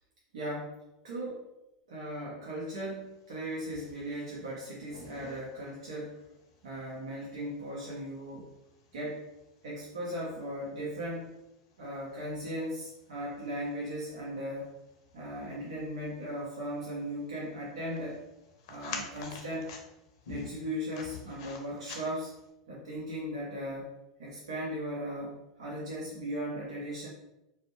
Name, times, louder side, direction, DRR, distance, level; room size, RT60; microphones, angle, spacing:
voice 1, 0.3-0.8 1.0-1.5 1.9-6.2 6.6-8.5 8.9-9.2 9.6-11.3 11.8-14.7 15.1-18.2 18.7-19.7 20.3-22.4 22.7-23.9 24.2-27.1, equal, 85° right, -6 dB, 0.7 m, -37 dB
sound 1, 3.1-22.5, left 5 dB, 65° left, 0.5 m, -50 dB
2.5 x 2.1 x 2.6 m, 0.92 s
hypercardioid pair, 110°, 3 cm